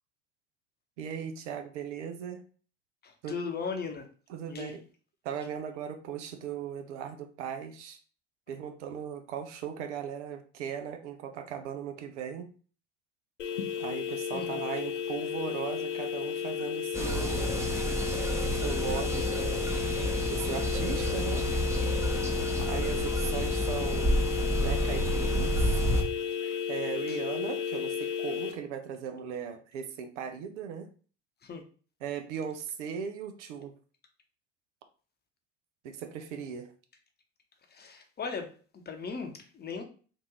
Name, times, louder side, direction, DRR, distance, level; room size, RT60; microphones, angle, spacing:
voice 1, 1.0-2.4 3.2-3.4 4.3-4.8 5.2-8.0 8.5-12.5 13.8-17.6 18.5-19.8 20.3-21.5 22.6-24.2 24.6-25.8 26.7-30.9 32.0-33.7 35.8-36.7, right 8 dB, 75° right, 0.6 m, -38 dB
voice 2, 3.0-4.1 4.5-4.7 14.3-14.6 22.3-22.6 27.1-27.2 31.4-31.6 37.7-39.8, left 5 dB, 30° left, 0.8 m, -38 dB
sound 1, 13.4-28.5, left 8 dB, 85° left, 0.6 m, -33 dB
sound 2, 16.9-26.0, equal, 10° right, 0.7 m, -30 dB
3.6 x 2.5 x 2.9 m
hypercardioid pair, 70°, 36 cm